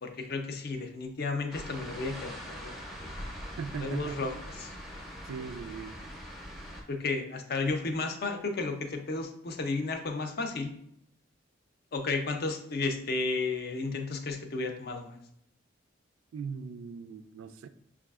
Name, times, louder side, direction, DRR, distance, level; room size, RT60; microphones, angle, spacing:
voice 1, 0.0-2.8 3.8-4.3 4.6-4.7 6.9-10.7 11.9-15.1, left 3 dB, 50° left, 0.5 m, -33 dB
sound 1, 1.5-6.8, equal, ahead, 0.6 m, -42 dB
voice 2, 3.6-4.3 5.3-6.0 16.3-17.7, right 5 dB, 85° right, 0.3 m, -39 dB
5.8 x 2.4 x 2.3 m
head